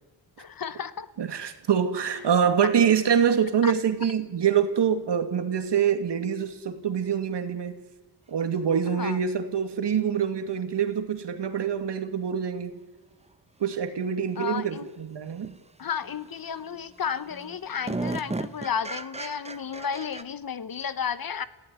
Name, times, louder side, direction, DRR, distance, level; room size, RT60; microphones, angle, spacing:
voice 1, 0.4-1.1 3.6-3.7 9.0-9.2 14.4-14.9 15.8-21.4, left 7 dB, 50° left, 15 dB, 1.2 m, -32 dB
voice 2, 1.2-7.8 8.3-12.8 13.6-15.5, right 8 dB, 65° right, 8 dB, 2.5 m, -25 dB
sound 1, 12.6-12.7 15.4-15.6 16.0-16.5 16.9-17.0 17.3-20.2, right 2 dB, 15° right, 1.2 m, -35 dB
28.5 x 16.0 x 9.7 m, 1.2 s
cardioid pair, 80°, 45 cm